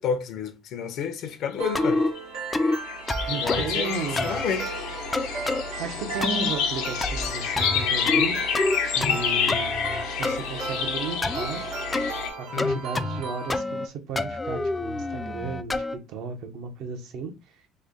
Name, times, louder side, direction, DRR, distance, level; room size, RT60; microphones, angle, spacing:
voice 1, 0.0-2.0 3.3-3.9 4.2-4.7 12.5-12.8, left 6 dB, 60° left, 0.6 m, -30 dB
sound 1, 1.6-13.6, right 4 dB, 85° right, 1.4 m, -37 dB
sound 2, 1.7-2.1 2.5-2.8 3.1-3.7 4.2-4.4 5.1-5.6 6.2-6.5 7.0-7.3 7.6-8.3 8.5-9.2 9.5-10.4 11.2-11.5 11.9-12.1 12.6-13.2 13.5-13.9 14.2-16.0, left 2 dB, 15° left, 0.3 m, -27 dB
sound 3, 1.8-1.9 2.2-12.3, left 7 dB, 90° left, 0.9 m, -29 dB
voice 2, 3.3-4.7 5.8-8.4 8.8-9.7 10.2-11.6 12.4-17.3, right 5 dB, 70° right, 0.9 m, -34 dB
3.2 x 2.2 x 3.8 m
cardioid pair, 115°, 0 cm